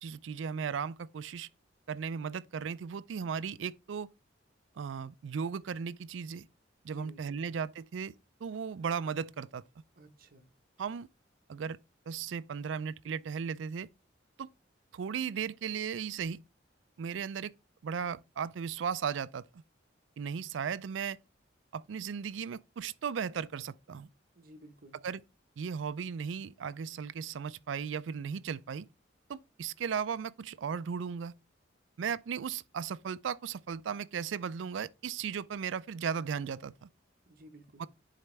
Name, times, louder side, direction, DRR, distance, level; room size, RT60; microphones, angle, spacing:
voice 1, 0.0-1.5 1.9-4.1 4.8-6.5 6.8-8.1 8.4-9.6 10.8-11.1 11.5-11.8 12.1-13.9 14.4-14.5 14.9-16.4 17.0-17.5 17.8-19.6 20.2-21.2 21.7-24.1 25.0-25.2 25.6-28.9 29.3-31.3 32.0-36.9 37.8-37.9, right 6 dB, 80° right, 0.4 m, -36 dB
voice 2, 6.9-7.5 9.9-10.5 24.3-25.0 37.3-37.9, equal, 50° right, 1.2 m, -53 dB
10.0 x 4.1 x 3.3 m
head